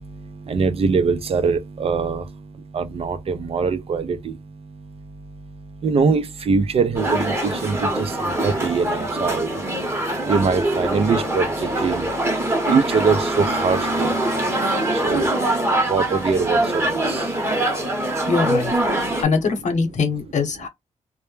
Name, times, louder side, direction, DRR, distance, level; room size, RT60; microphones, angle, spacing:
voice 1, 0.5-2.2 2.7-4.2 5.8-7.8 8.4-9.5 10.3-11.5 11.8-12.1 12.7-14.1 15.0-15.3 15.9-17.0, right 5 dB, 50° right, 0.4 m, -22 dB
sound 1, 7.0-19.2, right 1 dB, 20° right, 0.8 m, -23 dB
voice 2, 18.3-18.7 19.2-20.7, left 5 dB, 65° left, 0.8 m, -22 dB
2.1 x 2.1 x 3.1 m
cardioid pair, 85°, 13 cm